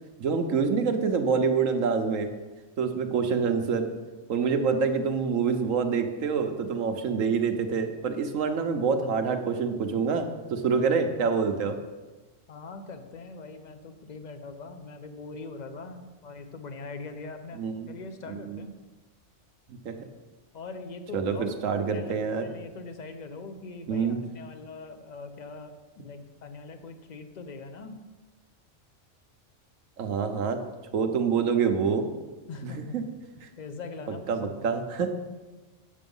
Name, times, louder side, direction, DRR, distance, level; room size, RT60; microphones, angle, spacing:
voice 1, 0.2-2.3 2.8-3.9 4.3-11.8 17.5-17.9 18.3-18.6 19.7-20.0 21.1-22.5 23.9-24.2 30.0-30.6 30.9-32.1 32.6-33.0 33.4-33.5 34.3-35.1, right 5 dB, 85° right, 6 dB, 1.3 m, -26 dB
voice 2, 12.5-18.8 20.5-21.6 21.9-28.0 32.5-33.1 33.6-34.6, left 3 dB, 40° left, 8 dB, 0.8 m, -42 dB
8.7 x 7.0 x 5.4 m, 1.2 s
omnidirectional pair, 1.3 m